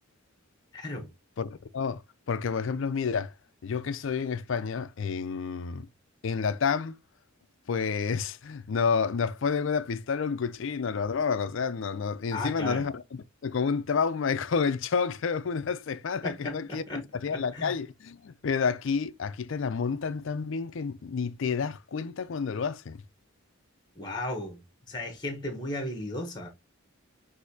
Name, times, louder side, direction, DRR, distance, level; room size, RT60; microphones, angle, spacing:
voice 1, 0.7-1.1 12.3-12.9 16.2-17.0 17.3-17.8 24.0-24.6 24.9-26.5, left 1 dB, 20° left, 1.0 m, -35 dB
voice 2, 1.4-2.0 2.3-3.3 3.6-5.9 6.2-7.0 7.7-13.0 13.4-23.0, left 5 dB, 60° left, 0.4 m, -29 dB
6.3 x 2.7 x 2.7 m
head